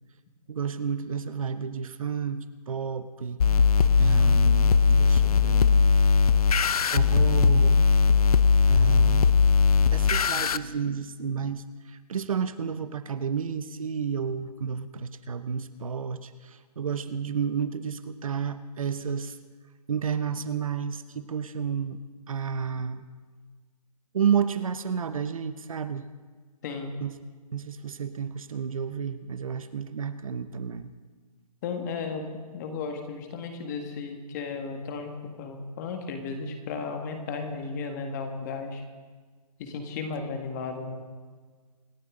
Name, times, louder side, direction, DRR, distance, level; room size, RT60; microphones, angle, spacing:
voice 1, 0.5-3.6 4.0-5.8 6.8-7.8 8.7-9.4 9.9-19.4 19.9-22.0 22.3-23.0 24.1-26.1 27.0-27.1 27.5-30.9, right 7 dB, 55° right, 12 dB, 0.9 m, -31 dB
sound 1, 3.4-10.6, left 5 dB, 65° left, 0.6 m, -19 dB
voice 2, 26.6-26.9 31.6-32.2 32.5-38.8 39.6-41.0, left 4 dB, 25° left, 5 dB, 1.9 m, -34 dB
27.0 x 12.0 x 3.8 m, 1.5 s
hypercardioid pair, 155°, 21 cm